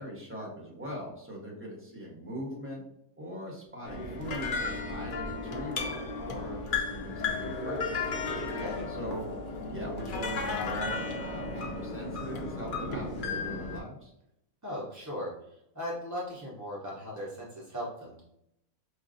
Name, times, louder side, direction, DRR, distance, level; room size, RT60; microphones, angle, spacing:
voice 1, 0.0-2.8 3.2-8.1 8.9-9.3 9.6-14.1, equal, 10° right, -4 dB, 0.9 m, -41 dB
sound 1, 3.9-13.8, left 3 dB, 90° left, 0.4 m, -34 dB
voice 2, 8.5-8.9 14.6-18.2, equal, 30° right, -6 dB, 0.3 m, -38 dB
4.7 x 2.5 x 2.5 m, 0.77 s
omnidirectional pair, 1.6 m